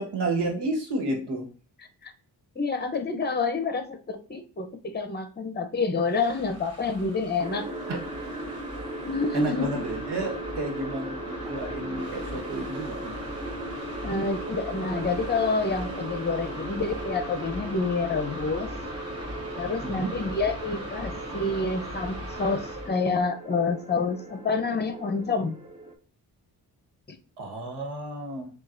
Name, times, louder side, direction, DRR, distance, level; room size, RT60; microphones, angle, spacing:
voice 1, 0.0-1.5 7.9-8.0 9.3-13.2 19.8-20.1 27.4-28.5, right 2 dB, 80° right, 2 dB, 1.4 m, -31 dB
voice 2, 2.6-7.7 9.0-9.8 14.0-18.7 19.6-25.6 27.1-27.2, left 4 dB, 25° left, 7 dB, 0.8 m, -28 dB
sound 1, 6.0-23.0, equal, 35° right, 1.6 m, -40 dB
sound 2, 7.4-25.9, right 1 dB, 15° right, 0.9 m, -38 dB
7.4 x 2.5 x 2.6 m, 0.38 s
cardioid pair, 65°, 40 cm